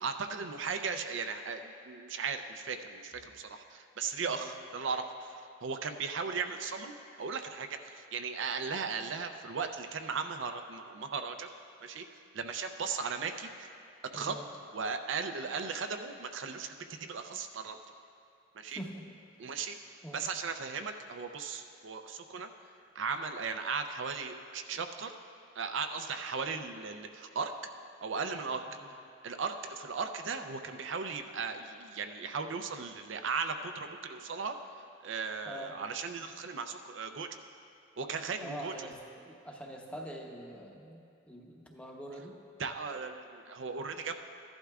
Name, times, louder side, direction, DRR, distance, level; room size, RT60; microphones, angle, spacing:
voice 1, 0.0-6.9 7.2-11.5 11.8-12.0 12.3-13.7 14.1-14.4 14.7-17.8 18.6-18.8 19.4-19.8 20.1-22.5 23.0-25.1 25.6-27.5 28.0-28.6 29.2-34.5 35.0-37.4 38.0-38.9 42.6-44.2, right 5 dB, 60° right, 6 dB, 0.5 m, -37 dB
voice 2, 18.7-19.0 20.0-20.3 28.8-28.9 35.5-35.7 38.4-42.4, right 1 dB, 5° left, 0 dB, 0.8 m, -44 dB
15.0 x 11.5 x 2.4 m, 2.6 s
head